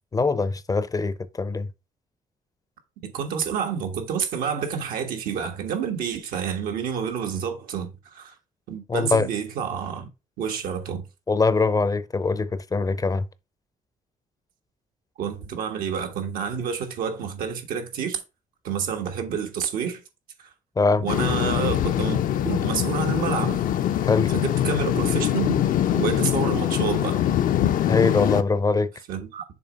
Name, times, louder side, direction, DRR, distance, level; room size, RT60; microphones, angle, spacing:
voice 1, 0.1-1.7 8.9-9.3 11.3-13.3 20.8-21.1 24.0-24.3 27.9-28.9, left 4 dB, 25° left, 0.5 m, -22 dB
voice 2, 3.0-8.3 8.7-10.1 10.4-11.0 15.2-18.2 18.6-20.0 20.4-20.5 21.0-23.7 24.3-25.6 25.9-27.2 29.1-29.4, right 7 dB, 90° right, 1.4 m, -29 dB
sound 1, 21.1-28.4, left 11 dB, 70° left, 0.6 m, -23 dB
6.9 x 3.1 x 5.1 m
cardioid pair, 90°, 14 cm